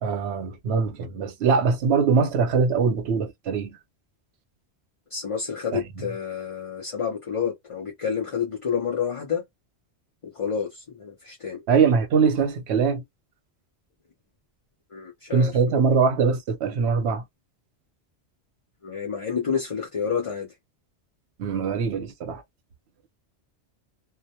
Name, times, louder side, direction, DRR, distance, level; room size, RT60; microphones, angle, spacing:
voice 1, 0.0-3.8 5.7-5.8 11.7-13.0 15.3-17.2 21.4-22.4, right 5 dB, 75° right, 0.9 m, -22 dB
voice 2, 5.1-9.4 10.2-11.6 14.9-15.8 18.8-20.5, left 7 dB, 40° left, 0.5 m, -29 dB
2.3 x 2.1 x 2.8 m
omnidirectional pair, 1.1 m